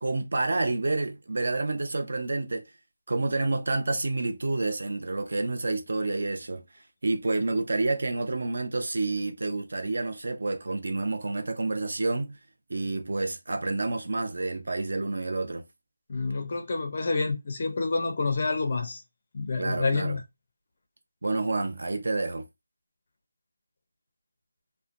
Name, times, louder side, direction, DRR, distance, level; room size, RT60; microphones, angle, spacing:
voice 1, 0.0-2.7 3.1-6.6 7.0-12.4 12.7-15.6 19.6-20.2 21.2-22.5, right 2 dB, 45° right, 0.5 m, -29 dB
voice 2, 16.1-19.0 19.3-20.2, left 3 dB, 25° left, 0.4 m, -28 dB
2.9 x 2.1 x 2.4 m
figure-of-eight pair, 180°, 0 cm